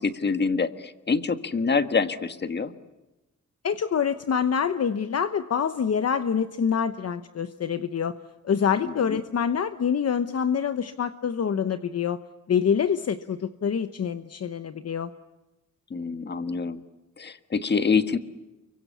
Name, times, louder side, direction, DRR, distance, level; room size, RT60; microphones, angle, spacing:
voice 1, 0.0-2.7 8.8-9.2 15.9-16.8 17.2-18.2, left 5 dB, 35° left, 10 dB, 1.5 m, -26 dB
voice 2, 3.6-8.1 8.4-12.2 12.5-15.1, left 7 dB, 55° left, 10 dB, 1.0 m, -26 dB
30.0 x 24.0 x 8.4 m, 1.0 s
wide cardioid pair, 165°, 30 cm